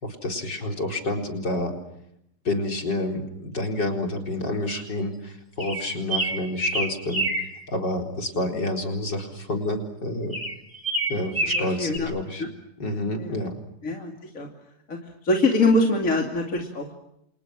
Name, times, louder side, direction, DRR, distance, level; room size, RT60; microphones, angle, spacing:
voice 1, 0.0-1.7 2.4-10.4 11.1-12.4 12.8-13.5, left 1 dB, 55° left, 2 dB, 4.9 m, -29 dB
sound 1, 5.6-7.5 10.3-12.0, right 2 dB, 10° right, 2.9 m, -27 dB
voice 2, 11.5-12.1 12.4-12.5 13.2-13.4 13.8-14.5 14.9-16.9, left 2 dB, 40° left, 1 dB, 3.0 m, -24 dB
30.0 x 27.0 x 6.2 m, 0.78 s
omnidirectional pair, 2.3 m